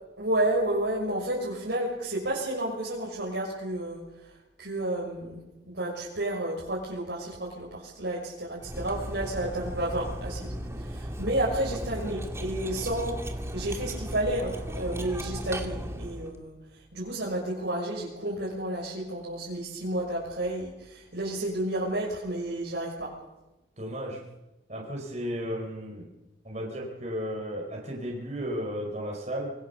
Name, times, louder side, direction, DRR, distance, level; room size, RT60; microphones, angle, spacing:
voice 1, 0.2-10.5 10.7-16.5 16.9-23.1, right 1 dB, 75° right, -5 dB, 6.4 m, -31 dB
Cutlery silverware, 8.6-16.4, equal, 15° right, 2.2 m, -36 dB
voice 2, 23.8-24.3 24.7-26.1 26.4-29.5, equal, 40° right, -1 dB, 4.4 m, -34 dB
25.5 x 22.0 x 6.9 m, 0.99 s
head